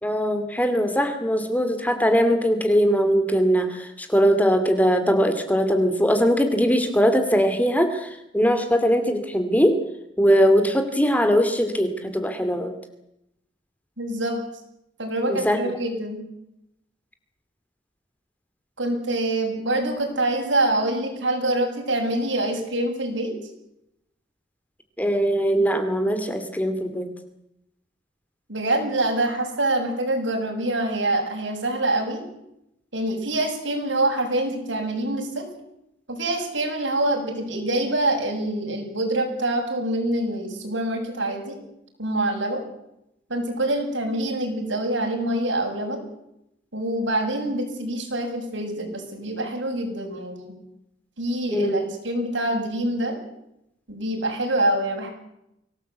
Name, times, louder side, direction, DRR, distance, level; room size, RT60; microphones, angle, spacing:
voice 1, 0.0-9.8 10.2-12.7 15.3-15.6 25.0-27.1 51.5-51.9, equal, 10° left, 8 dB, 2.5 m, -21 dB
voice 2, 14.0-14.4 15.0-16.2 18.8-23.3 28.5-32.2 32.9-35.5 36.1-41.6 42.0-42.6 43.3-46.1 46.7-50.5 51.2-53.2 53.9-55.1, right 1 dB, 75° right, 2 dB, 7.5 m, -25 dB
24.5 x 18.5 x 8.2 m, 0.82 s
head